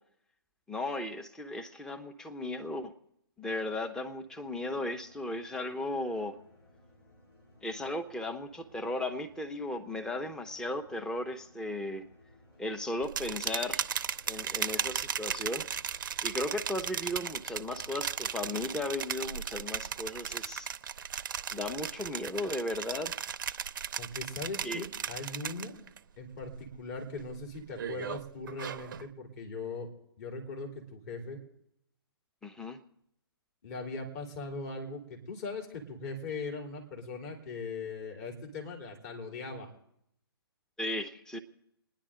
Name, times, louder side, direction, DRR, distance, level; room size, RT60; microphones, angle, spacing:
voice 1, 0.7-2.9 3.4-6.4 7.6-12.1 12.6-13.9 14.3-15.7 16.2-20.7 21.5-23.2 24.6-24.8 32.4-32.8 40.8-41.4, left 1 dB, 5° left, 5 dB, 0.8 m, -36 dB
sound 1, 4.0-20.4, left 2 dB, 70° left, 4.1 m, -60 dB
sound 2, 13.0-26.0 26.3-26.8 27.2-29.1, right 8 dB, 50° right, 0.6 m, -36 dB
voice 2, 24.0-25.7 26.2-29.9 30.2-31.4 33.6-39.7, left 3 dB, 40° left, 1 dB, 3.4 m, -40 dB
28.0 x 10.5 x 3.8 m, 0.75 s
figure-of-eight pair, 130°, 13 cm